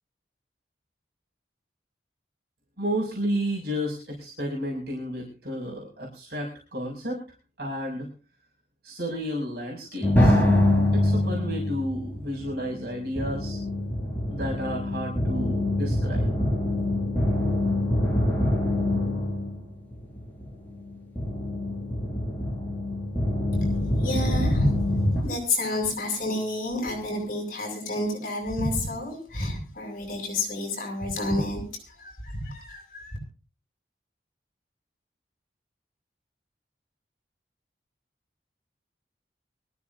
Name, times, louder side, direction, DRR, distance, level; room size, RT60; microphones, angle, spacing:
voice 1, 2.8-7.2 7.6-8.1 8.8-10.4 11.0-13.6 14.3-16.3, equal, 65° right, -3 dB, 6.3 m, -32 dB
sound 1, 10.0-25.2, left 1 dB, 10° left, 5.8 m, -25 dB
voice 2, 23.5-31.6 32.0-33.2, left 1 dB, 50° left, 2 dB, 7.8 m, -28 dB
23.5 x 15.5 x 2.8 m, 0.36 s
head